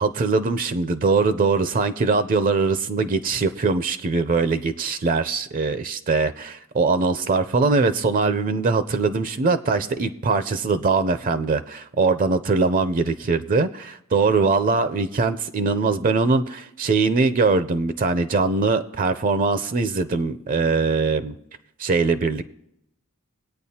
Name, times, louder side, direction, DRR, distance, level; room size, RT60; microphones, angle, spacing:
voice 1, 0.0-21.4 21.8-22.4, right 4 dB, 40° right, 11 dB, 0.5 m, -22 dB
21.5 x 8.8 x 2.8 m, 0.78 s
head